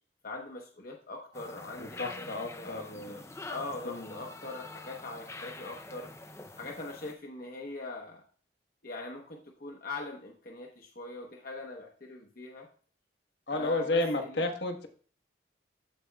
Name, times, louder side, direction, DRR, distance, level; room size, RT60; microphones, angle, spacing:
voice 1, 0.2-2.3 2.6-6.1 6.6-8.2 8.8-12.7 13.5-14.0 14.3-14.5, left 3 dB, 50° left, 0 dB, 1.0 m, -42 dB
sound 1, 1.3-7.1, left 2 dB, 15° left, 0.5 m, -46 dB
voice 2, 1.8-3.2 3.8-4.1 13.5-14.9, left 2 dB, 65° left, 3 dB, 1.2 m, -32 dB
15.0 x 5.2 x 2.3 m, 0.43 s
head